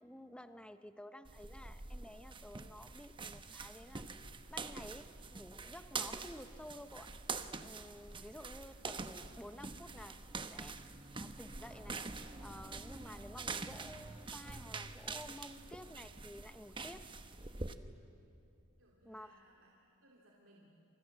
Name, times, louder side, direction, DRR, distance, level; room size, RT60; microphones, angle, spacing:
voice 1, 0.0-4.1 4.5-7.1 7.6-10.2 10.5-10.8 11.1-12.0 12.4-17.0 19.0-19.3, left 1 dB, 5° left, 10 dB, 0.8 m, -52 dB
sound 1, 1.3-17.7, right 4 dB, 25° right, 1.0 m, -45 dB
voice 2, 18.8-20.7, right 1 dB, 65° right, -3 dB, 3.1 m, -66 dB
29.5 x 27.0 x 7.5 m, 2.8 s
head